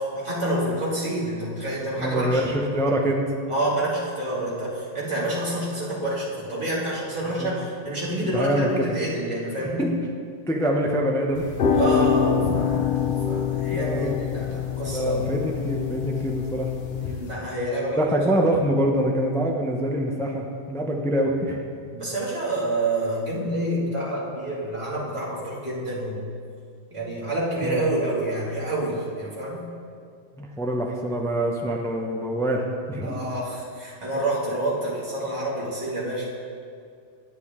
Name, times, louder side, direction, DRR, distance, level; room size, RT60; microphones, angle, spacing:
voice 1, 0.0-2.5 2.8-2.9 3.5-9.9 11.7-15.3 17.0-18.0 21.9-26.3 26.9-29.7 33.0-36.3, right 1 dB, 25° right, -9 dB, 2.3 m, -28 dB
voice 2, 2.0-3.4 7.4-7.5 8.0-8.9 9.8-9.9 10.5-11.5 13.7-14.2 14.9-16.7 18.0-21.6 27.6-27.9 30.4-33.2, equal, 5° left, 1 dB, 0.4 m, -25 dB
Piano Chord C, 11.3-17.3, left 7 dB, 60° left, 0.9 m, -25 dB
9.8 x 8.3 x 3.6 m, 2.3 s
omnidirectional pair, 1.2 m